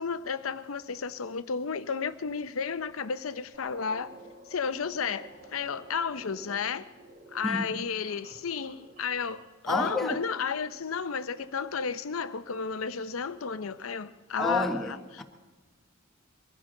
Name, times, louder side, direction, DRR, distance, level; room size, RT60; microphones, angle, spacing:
voice 1, 0.0-4.1 4.5-6.9 7.3-15.2, left 5 dB, 75° left, 0.7 m, -32 dB
sound 1, 3.5-9.5, right 2 dB, 40° right, 2.6 m, -51 dB
voice 2, 7.4-7.7 9.7-10.2 14.4-14.9 15.2-15.3, left 1 dB, ahead, 1.1 m, -29 dB
23.0 x 15.0 x 3.8 m
head